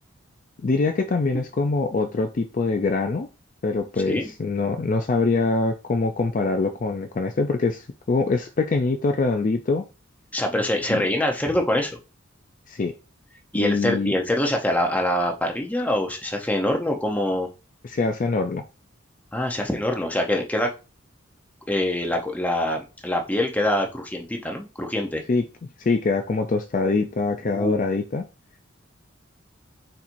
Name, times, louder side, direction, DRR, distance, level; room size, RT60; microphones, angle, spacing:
voice 1, 0.6-3.3 3.6-9.8 10.9-11.0 12.7-12.9 13.5-14.1 17.8-18.6 25.3-25.4 25.8-28.2, left 3 dB, 40° left, 0.4 m, -24 dB
voice 2, 10.3-12.0 13.5-17.5 19.3-20.7 21.7-25.2 27.4-27.8, left 1 dB, 10° left, 0.7 m, -24 dB
4.3 x 4.1 x 2.6 m
head